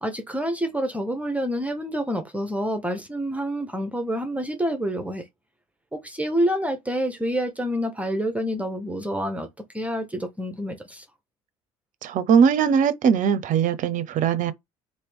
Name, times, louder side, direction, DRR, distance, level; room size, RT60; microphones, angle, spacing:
voice 1, 0.0-5.2 5.9-9.5 9.7-11.0, equal, 10° right, 0.8 m, -27 dB
voice 2, 12.0-14.5, right 7 dB, 45° right, 0.6 m, -20 dB
3.0 x 2.7 x 3.4 m
figure-of-eight pair, 60°, 18 cm